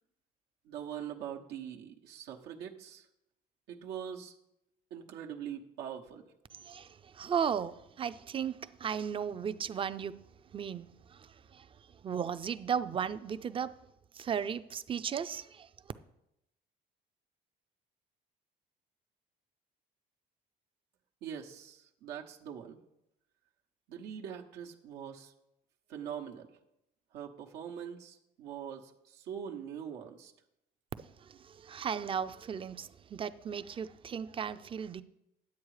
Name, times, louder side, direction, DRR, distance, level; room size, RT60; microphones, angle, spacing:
voice 1, 0.6-3.1 3.7-4.3 4.9-6.2 21.2-22.8 23.9-25.3 25.9-26.5 27.1-30.3, right 8 dB, 85° right, 1.1 m, -43 dB
voice 2, 6.6-10.2 10.5-11.7 12.0-13.7 14.1-15.7 31.2-35.0, right 7 dB, 30° right, 0.5 m, -36 dB
10.5 x 7.8 x 4.8 m
cardioid pair, 110°, 17 cm